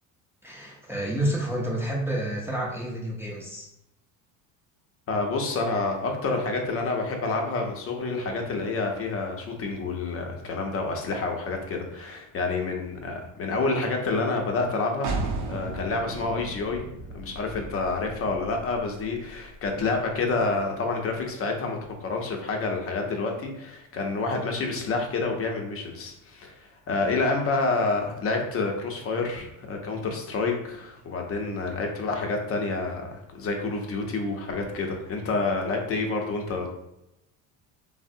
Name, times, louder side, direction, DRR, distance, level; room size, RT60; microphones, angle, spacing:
voice 1, 0.4-3.7, right 1 dB, 5° right, -4 dB, 0.5 m, -29 dB
voice 2, 5.1-15.1 15.5-16.8 17.1-26.5 26.9-36.7, left 3 dB, 35° left, 2 dB, 0.7 m, -28 dB
sound 1, 15.0-20.6, right 3 dB, 50° right, 0.6 m, -36 dB
3.3 x 2.1 x 2.6 m, 0.86 s
cardioid pair, 115°, 38 cm